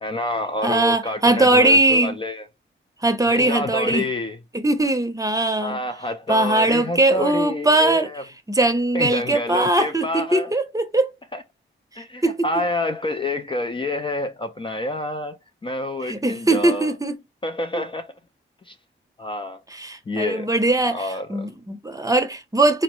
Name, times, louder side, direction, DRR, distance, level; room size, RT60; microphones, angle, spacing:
voice 1, 0.0-2.5 3.3-4.4 5.6-8.2 8.9-10.5 11.3-11.4 12.0-17.0 17.4-18.1 18.7-18.8 19.2-19.6 20.1-20.5 20.9-21.3, left 2 dB, 25° left, 0.4 m, -28 dB
voice 2, 0.6-2.2 3.0-4.1 4.5-5.8 6.3-8.1 8.5-11.1 12.2-12.4 16.0-17.2 19.7-22.8, right 2 dB, 15° right, 0.7 m, -20 dB
3.8 x 2.1 x 3.0 m
cardioid pair, 85°, 21 cm